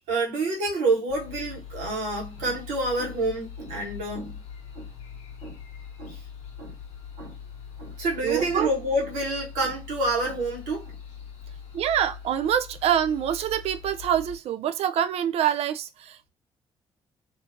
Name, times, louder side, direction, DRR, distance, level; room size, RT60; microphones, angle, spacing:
voice 1, 0.1-4.4 4.8-4.9 5.4-5.6 6.0-6.2 6.6-6.7 7.2-7.3 7.8-10.9, right 2 dB, 70° right, 1.1 m, -28 dB
sound 1, 1.1-14.4, left 7 dB, 65° left, 0.8 m, -42 dB
voice 2, 8.2-8.7 11.7-16.3, right 10 dB, 55° right, 0.4 m, -25 dB
2.6 x 2.4 x 2.5 m
hypercardioid pair, 45°, 13 cm